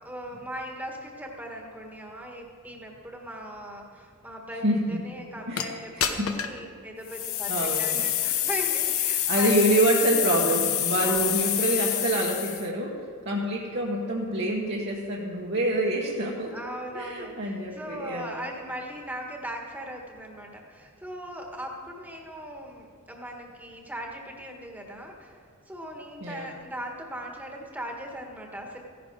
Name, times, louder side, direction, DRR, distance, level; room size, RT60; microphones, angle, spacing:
voice 1, 0.0-9.6 11.0-11.3 16.5-28.8, equal, 5° right, 1 dB, 1.5 m, -39 dB
voice 2, 4.6-5.0 5.5-6.3 7.5-8.1 9.3-16.6 16.9-18.4 26.2-26.5, right 1 dB, 50° right, -3 dB, 1.3 m, -27 dB
sound 1, 5.6-5.7 6.0-6.6 7.1-12.7, left 11 dB, 70° left, 0.9 m, -27 dB
15.5 x 11.0 x 4.8 m, 2.3 s
head